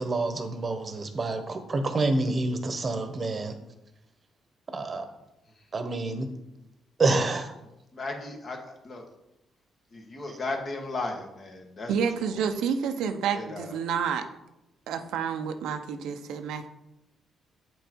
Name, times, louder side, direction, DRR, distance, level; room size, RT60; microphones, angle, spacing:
voice 1, 0.0-3.5 4.7-5.0 5.7-6.3 7.0-7.5, right 3 dB, 35° right, 8 dB, 1.0 m, -27 dB
voice 2, 7.9-9.0 9.9-11.9 12.3-12.5 13.3-13.7, left 2 dB, 45° left, 2 dB, 1.7 m, -35 dB
voice 3, 11.9-14.2 14.9-16.7, right 7 dB, 85° right, 7 dB, 0.7 m, -29 dB
8.0 x 5.3 x 4.6 m, 0.90 s
cardioid pair, 90°, 0 cm